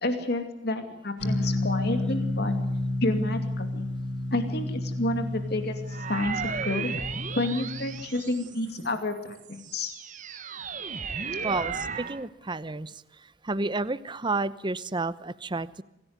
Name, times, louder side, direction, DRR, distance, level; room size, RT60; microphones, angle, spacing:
voice 1, 0.0-2.5 3.0-3.9 4.3-6.9 7.4-9.9, left 2 dB, 60° left, 7 dB, 2.5 m, -30 dB
sound 1, 1.2-8.1, left 1 dB, 75° left, 2.9 m, -31 dB
sound 2, 5.9-8.8 9.4-12.2, right 5 dB, 45° right, 1.3 m, -35 dB
voice 2, 11.4-15.8, right 3 dB, 25° right, 15 dB, 0.8 m, -31 dB
25.5 x 17.0 x 9.6 m, 0.86 s
head